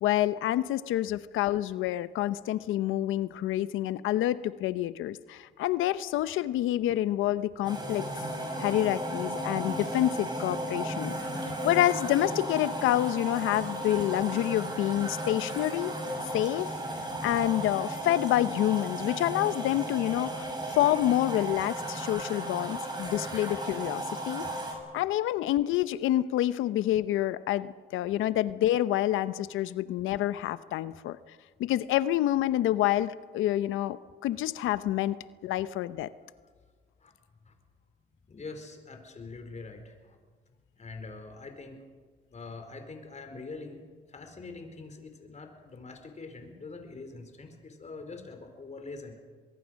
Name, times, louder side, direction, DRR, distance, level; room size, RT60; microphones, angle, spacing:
voice 1, 0.0-8.2 8.6-15.9 16.3-16.7 17.2-24.5 24.9-31.2 31.6-35.2 35.4-36.1, left 13 dB, 90° left, 15 dB, 0.8 m, -28 dB
sound 1, 7.6-24.7, right 1 dB, 20° right, 6.4 m, -35 dB
voice 2, 38.3-40.2 40.8-41.8 42.3-43.8 44.1-49.1, left 3 dB, 35° left, 6 dB, 4.3 m, -44 dB
23.0 x 22.5 x 6.4 m, 1.5 s
cardioid pair, 90°, 20 cm